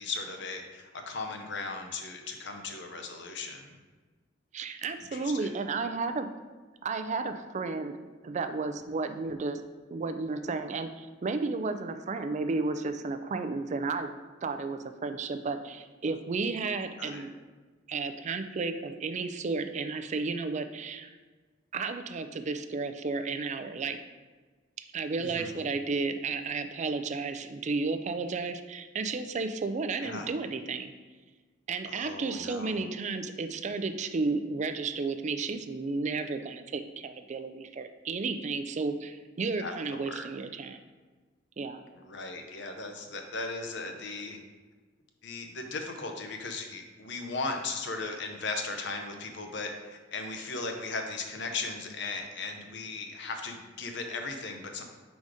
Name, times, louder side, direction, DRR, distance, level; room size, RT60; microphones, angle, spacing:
voice 1, 0.0-3.7 5.0-5.5 17.0-17.2 25.2-25.5 30.0-30.3 31.8-32.8 39.6-40.3 41.9-44.4 45.2-54.8, left 3 dB, 65° left, 4 dB, 0.8 m, -37 dB
voice 2, 4.5-6.3 6.8-8.0 8.2-9.6 9.9-14.2 14.4-17.3 17.9-21.1 21.7-24.0 24.9-30.9 31.7-40.8 41.6-41.8, right 4 dB, 40° right, 9 dB, 0.4 m, -33 dB
4.9 x 4.1 x 4.9 m, 1.3 s
head